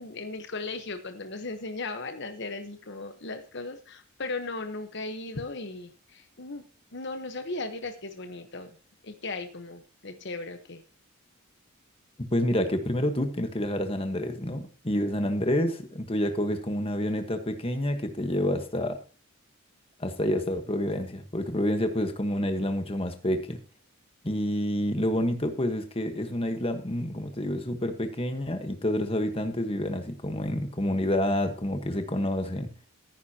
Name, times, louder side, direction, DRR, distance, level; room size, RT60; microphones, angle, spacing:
voice 1, 0.0-6.6 6.9-8.7 9.0-10.8, left 3 dB, 55° left, 7 dB, 1.1 m, -37 dB
voice 2, 12.2-19.0 20.0-23.6 24.2-32.7, left 1 dB, 25° left, 6 dB, 1.3 m, -28 dB
14.5 x 9.8 x 2.9 m, 0.36 s
head